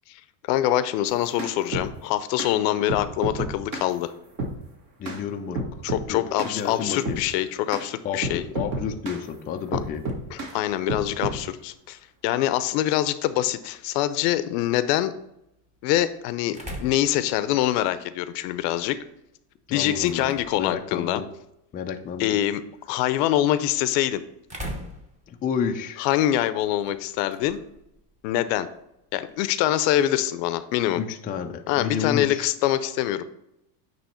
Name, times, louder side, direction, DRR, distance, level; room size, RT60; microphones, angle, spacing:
voice 1, 0.5-4.1 5.8-8.4 9.7-9.8 10.3-15.1 15.8-19.0 19.7-21.2 22.2-22.6 22.9-24.2 26.0-27.6 28.2-28.7 29.1-31.0 31.7-33.2, left 13 dB, 75° left, 13 dB, 0.7 m, -24 dB
sound 1, 1.1-1.9 2.4-2.5 2.9-3.9 4.4-4.6 5.0-5.2 5.5-6.1 6.4-6.6 7.0-7.2 7.7-7.9 8.2-9.2 9.7-10.5 10.9-11.4, right 2 dB, 40° right, 1.7 m, -30 dB
voice 2, 5.0-5.8 6.1-7.2 8.0-10.0 19.7-21.3 21.7-22.4 25.3-26.1 31.0-32.5, left 7 dB, 20° left, 4 dB, 0.4 m, -31 dB
sound 2, 9.7-29.5, equal, 15° right, 1.0 m, -46 dB
8.9 x 3.1 x 4.3 m, 0.83 s
supercardioid pair, 120°, 49 cm